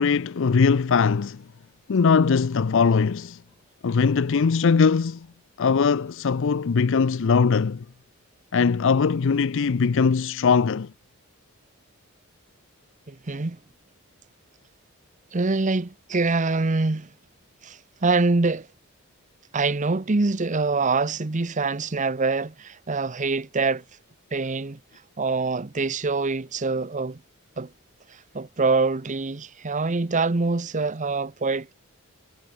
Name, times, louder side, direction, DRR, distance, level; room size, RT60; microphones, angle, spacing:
voice 1, 0.0-1.4 1.9-3.4 3.8-5.3 5.6-7.8 8.5-10.9, left 5 dB, 60° left, 0.5 m, -21 dB
voice 2, 13.1-13.6 15.3-17.1 17.6-18.7 19.5-23.8 24.3-24.8 25.2-27.2 27.6-27.7 28.3-31.7, right 3 dB, 35° right, 0.8 m, -25 dB
head